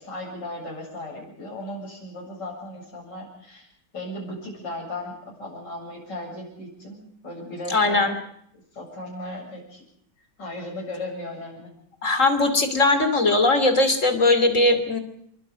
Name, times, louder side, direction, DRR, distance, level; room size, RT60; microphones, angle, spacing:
voice 1, 0.0-3.7 3.9-8.1 8.5-9.8 10.4-11.7, left 1 dB, 60° left, -2 dB, 8.3 m, -36 dB
voice 2, 7.7-8.1 12.0-15.0, left 2 dB, 40° left, 9 dB, 3.1 m, -19 dB
26.5 x 24.0 x 5.1 m, 0.69 s
omnidirectional pair, 2.1 m